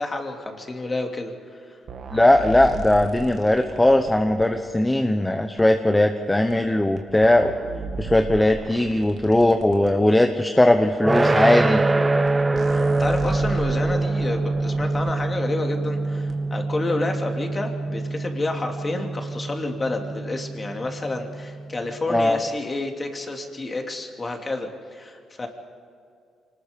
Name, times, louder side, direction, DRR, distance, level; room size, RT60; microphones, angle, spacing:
voice 1, 0.0-1.8 12.7-25.5, left 2 dB, 30° left, 3 dB, 2.9 m, -29 dB
sound 1, 1.9-4.6 5.6-5.7 6.5-6.6 7.0-9.9 10.8-10.9 11.8-11.9 12.3-12.4 12.5-15.3 16.3-16.4, right 5 dB, 60° right, 2.2 m, -36 dB
voice 2, 2.1-7.5 8.0-11.8 22.1-22.4, left 1 dB, 10° left, 6 dB, 1.1 m, -19 dB
sound 2, 11.0-22.0, right 2 dB, 25° right, 0.9 m, -24 dB
25.0 x 20.0 x 5.4 m, 2.3 s
cardioid pair, 80°, 0 cm